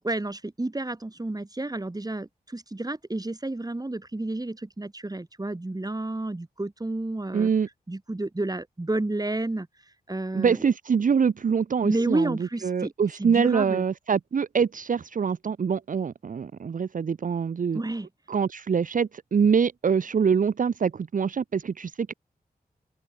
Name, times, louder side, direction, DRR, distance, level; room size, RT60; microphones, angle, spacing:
voice 1, 0.0-7.5 7.9-9.7 10.1-10.7 11.8-12.9 13.2-13.8 17.7-18.1, right 2 dB, 25° right, 6.0 m, -30 dB
voice 2, 7.3-7.7 10.3-12.4 12.6-17.8 18.3-22.1, right 6 dB, 60° right, 0.8 m, -24 dB
open air
cardioid pair, 60°, 16 cm